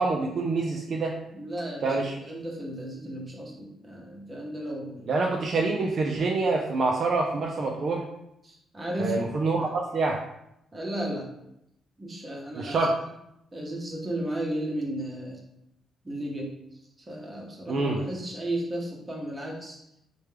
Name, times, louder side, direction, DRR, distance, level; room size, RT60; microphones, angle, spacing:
voice 1, 0.0-1.2 1.8-2.2 5.1-8.0 9.0-10.2 12.6-13.0 17.7-18.0, right 3 dB, 40° right, 0 dB, 0.3 m, -26 dB
voice 2, 1.3-5.1 8.4-9.3 9.6-9.7 10.7-11.3 12.0-12.8 13.5-15.4 16.0-16.5 17.1-19.8, right 1 dB, 15° right, -1 dB, 0.7 m, -34 dB
4.5 x 2.2 x 3.2 m, 0.80 s
cardioid pair, 170°, 0 cm